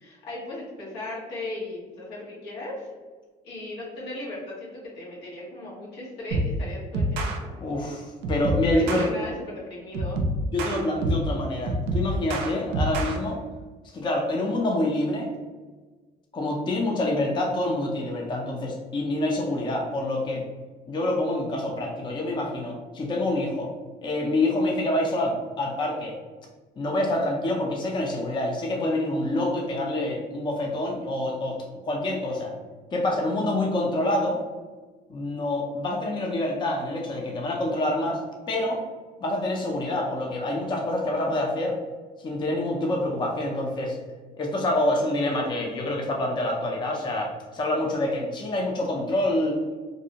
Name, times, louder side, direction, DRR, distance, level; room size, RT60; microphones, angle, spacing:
voice 1, 0.0-2.9 3.4-7.9 8.7-10.2, left 2 dB, 85° left, -5 dB, 1.0 m, -37 dB
sound 1, 6.3-6.6 6.9-7.4 8.2-9.1 9.9-11.3 11.7-13.2, right 1 dB, 90° right, 0.4 m, -26 dB
voice 2, 7.6-9.1 10.5-13.4 13.9-15.3 16.3-20.4 20.9-23.7 24.0-26.1 26.8-31.6 31.8-32.5 32.9-34.4 35.1-38.8 39.2-41.8 42.2-44.0 44.4-49.6, left 1 dB, 25° left, 0 dB, 0.4 m, -27 dB
2.5 x 2.0 x 2.7 m, 1.4 s
cardioid pair, 110°, 17 cm